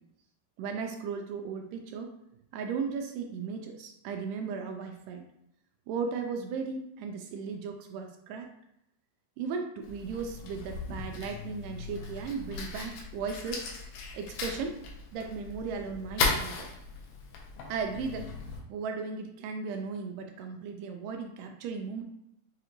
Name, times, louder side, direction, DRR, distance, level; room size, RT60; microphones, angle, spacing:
voice 1, 0.6-2.1 2.5-5.2 5.9-8.5 9.4-13.7 14.1-14.8 15.1-16.7 17.7-18.3 18.7-22.0, right 5 dB, 80° right, 4 dB, 2.0 m, -36 dB
Fire, 9.8-18.6, left 4 dB, 90° left, 2.6 m, -37 dB
6.3 x 2.5 x 2.9 m, 0.79 s
omnidirectional pair, 4.0 m